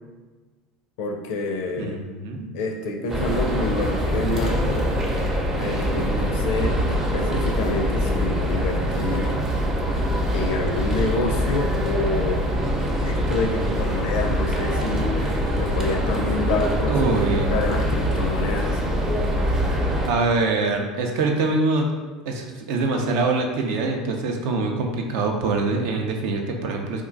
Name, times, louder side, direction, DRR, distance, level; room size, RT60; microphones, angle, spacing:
voice 1, 1.0-2.0 2.5-4.8 5.6-9.4 10.3-12.5 13.0-18.8, left 2 dB, 65° left, 3 dB, 0.4 m, -28 dB
voice 2, 1.8-2.5 16.9-17.6 20.1-21.9 22.3-27.0, right 3 dB, 60° right, 2 dB, 0.5 m, -24 dB
sound 1, 3.1-20.1, equal, 20° right, 0.6 m, -24 dB
2.4 x 2.2 x 3.8 m, 1.3 s
hypercardioid pair, 75°, 2 cm